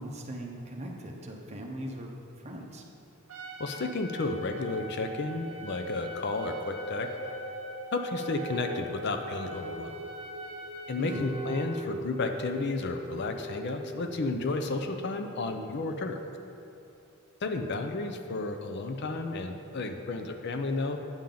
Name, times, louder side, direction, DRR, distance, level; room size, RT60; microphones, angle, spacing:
voice 1, 0.0-2.8 11.0-11.2, right 1 dB, 30° right, 0 dB, 0.8 m, -39 dB
Trumpet, 3.3-11.7, right 2 dB, 70° right, 1.0 m, -43 dB
voice 2, 3.6-7.1 7.9-10.0 10.9-16.2 17.4-21.0, left 3 dB, 50° left, 6 dB, 0.5 m, -32 dB
sound 1, 5.8-16.2 16.7-16.8, equal, 80° left, 1.9 m, -42 dB
8.8 x 7.1 x 3.8 m, 2.8 s
head